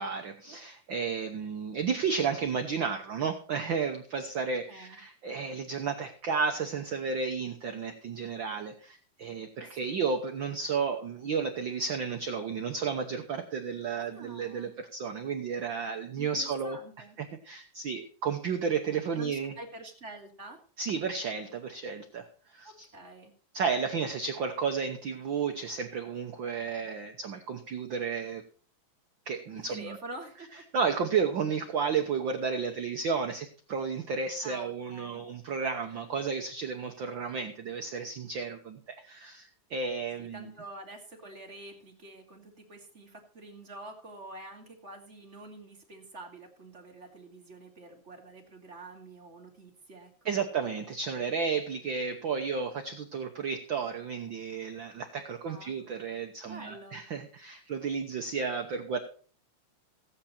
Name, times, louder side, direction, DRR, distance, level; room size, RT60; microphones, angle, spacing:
voice 1, 0.0-16.8 17.2-19.5 20.8-22.9 23.5-28.4 29.3-30.0 30.7-40.5 50.2-59.0, right 5 dB, 65° right, 5 dB, 1.2 m, -32 dB
voice 2, 4.7-5.0 9.6-10.0 14.0-14.7 16.2-17.2 19.1-20.6 22.6-23.3 29.5-30.6 34.4-35.2 40.2-50.4 55.5-55.7 56.4-57.0, right 2 dB, 25° right, 1 dB, 2.2 m, -47 dB
15.5 x 8.8 x 4.3 m, 0.41 s
omnidirectional pair, 3.3 m